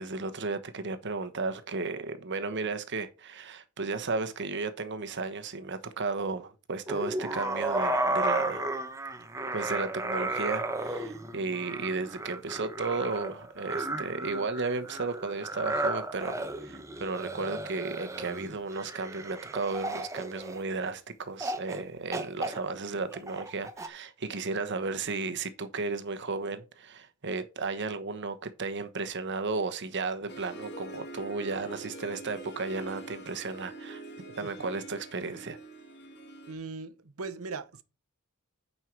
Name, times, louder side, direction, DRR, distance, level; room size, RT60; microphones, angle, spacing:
voice 1, 0.0-8.7 9.5-34.0 34.4-35.6, right 3 dB, 55° right, 1.1 m, -34 dB
sound 1, 6.9-20.9 21.4-21.8 22.1-23.9, right 2 dB, 15° right, 1.0 m, -34 dB
Harp, 30.3-36.5, right 2 dB, 55° left, 1.8 m, -44 dB
voice 2, 36.5-37.8, right 4 dB, 85° right, 0.9 m, -39 dB
9.2 x 5.5 x 4.6 m
head